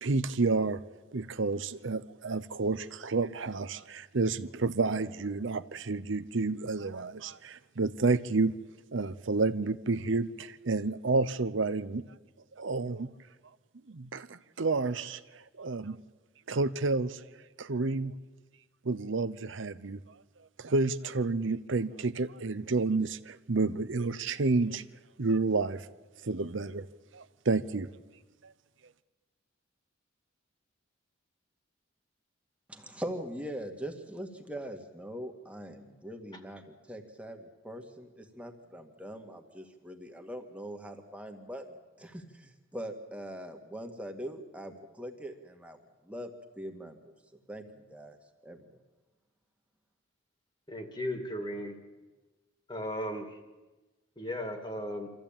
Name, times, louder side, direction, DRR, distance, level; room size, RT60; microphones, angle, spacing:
voice 1, 0.0-0.8 1.1-8.5 8.9-12.0 12.6-13.1 13.9-16.0 16.5-17.2 17.6-18.1 18.8-20.0 20.6-24.8 25.2-25.9 26.2-26.9 27.1-27.9 28.4-28.5, right 3 dB, 70° right, 13 dB, 0.8 m, -30 dB
voice 2, 32.7-45.8 46.0-46.3 46.6-47.1 47.5-48.2 48.4-48.7, equal, 5° right, 4 dB, 1.9 m, -42 dB
voice 3, 50.7-51.7 52.7-53.4 54.2-55.1, equal, 20° left, 5 dB, 2.2 m, -36 dB
25.5 x 14.5 x 8.9 m, 1.2 s
head